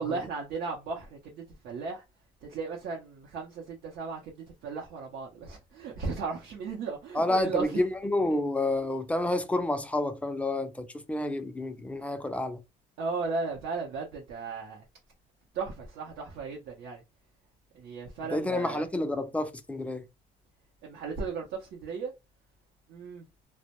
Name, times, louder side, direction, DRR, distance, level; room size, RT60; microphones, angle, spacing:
voice 1, 0.0-2.0 2.5-7.8 8.3-8.4 13.0-14.8 15.5-17.0 17.7-18.8 20.8-22.1 22.9-23.3, right 4 dB, 75° right, 0.6 m, -35 dB
voice 2, 7.1-12.6 18.3-20.0, left 2 dB, 10° left, 0.3 m, -29 dB
2.1 x 2.0 x 2.8 m
cardioid pair, 110°, 17 cm